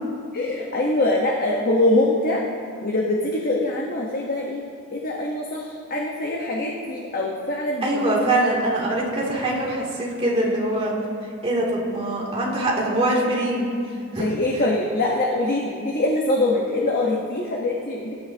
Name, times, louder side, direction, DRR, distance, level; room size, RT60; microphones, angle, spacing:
voice 1, 0.3-2.4 2.8-4.6 4.9-8.5 14.2-18.2, left 2 dB, 45° left, -2 dB, 1.3 m, -23 dB
voice 2, 7.8-10.9 11.4-13.8 14.1-14.3, right 1 dB, 25° right, -4 dB, 2.9 m, -23 dB
23.0 x 12.5 x 2.9 m, 2.4 s
head